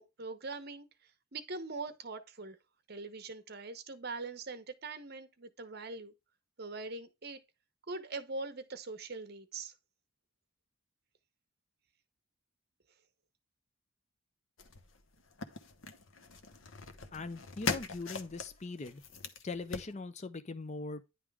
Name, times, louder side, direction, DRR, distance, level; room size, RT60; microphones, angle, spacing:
voice 1, 0.0-2.6 2.9-6.1 6.6-7.4 7.9-9.7, right 3 dB, 50° right, 0.9 m, -42 dB
sound 1, 14.6-19.9, left 4 dB, 70° left, 1.0 m, -41 dB
voice 2, 17.1-19.0 19.4-21.1, left 3 dB, 35° left, 0.5 m, -41 dB
10.0 x 3.6 x 4.7 m
head